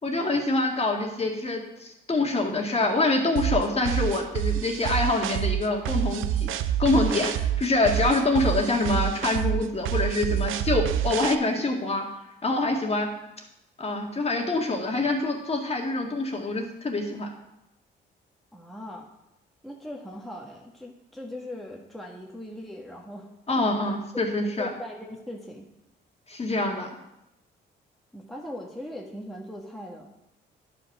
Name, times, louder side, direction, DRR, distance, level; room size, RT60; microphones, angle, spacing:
voice 1, 0.0-6.5 6.8-12.0 12.4-13.1 13.8-17.3 23.5-24.7 26.3-26.9, left 2 dB, 30° left, 1 dB, 1.8 m, -25 dB
sound 1, 3.4-11.4, right 11 dB, 85° right, 0.5 m, -27 dB
voice 2, 18.5-19.1 19.6-25.7 28.1-30.1, left 1 dB, ahead, -2 dB, 1.5 m, -40 dB
10.5 x 5.2 x 5.9 m, 0.88 s
cardioid pair, 90°, 20 cm